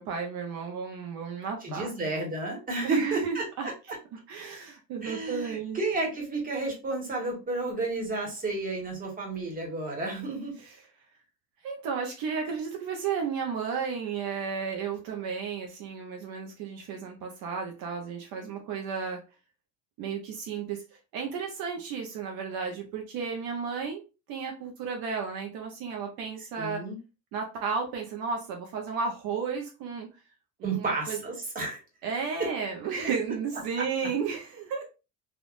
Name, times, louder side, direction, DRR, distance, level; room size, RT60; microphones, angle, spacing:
voice 1, 0.0-1.9 2.8-3.7 4.3-5.8 10.6-10.8 11.6-19.2 20.0-20.8 21.1-24.0 24.3-26.8 27.3-30.1 30.6-31.2 32.0-34.8, right 6 dB, 60° right, 0.8 m, -33 dB
voice 2, 1.6-3.4 5.0-10.5 26.6-27.0 30.6-31.8, right 2 dB, 20° right, 1.4 m, -31 dB
3.5 x 2.5 x 2.4 m
cardioid pair, 125°, 40 cm